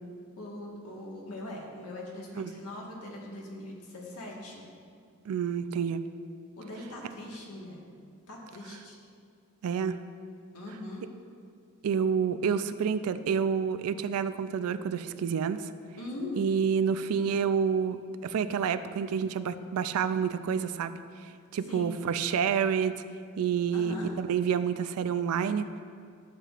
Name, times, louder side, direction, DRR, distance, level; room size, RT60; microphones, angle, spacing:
voice 1, 0.4-4.6 6.6-7.8 8.3-9.0 10.5-11.0 16.0-16.5 21.6-21.9 23.7-24.2, left 1 dB, 75° left, -2 dB, 1.5 m, -41 dB
voice 2, 5.3-6.0 9.6-10.0 11.8-15.7 16.4-20.9 21.5-22.9 23.4-25.7, right 7 dB, 70° right, 12 dB, 0.3 m, -28 dB
11.0 x 7.3 x 2.4 m, 2.2 s
head